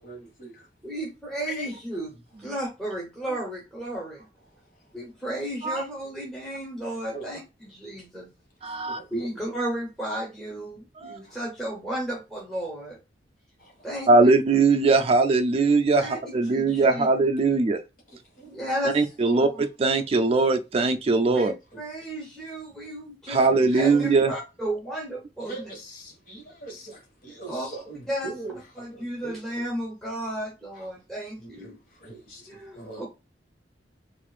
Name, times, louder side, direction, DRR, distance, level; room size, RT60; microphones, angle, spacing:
voice 1, 0.0-0.7 1.4-1.7 3.2-3.4 4.2-5.1 5.7-5.8 6.9-7.4 8.7-9.5 11.2-11.5 13.6-13.9 18.1-18.8 21.3-21.4 21.7-22.1 23.3-23.8 25.4-29.4 30.7-30.9 31.4-33.0, right 2 dB, 50° left, 1.5 m, -43 dB
voice 2, 0.8-2.1 2.4-4.2 4.9-7.4 7.7-8.3 9.1-13.0 13.8-14.3 16.0-17.1 18.5-19.6 21.3-25.7 27.5-27.7 28.1-28.3 28.8-31.7 32.5-33.0, right 1 dB, 5° left, 0.9 m, -33 dB
voice 3, 8.6-9.0 11.0-11.2 14.1-17.8 18.9-21.5 23.3-24.3, right 3 dB, 35° right, 0.4 m, -21 dB
4.3 x 2.5 x 2.4 m
head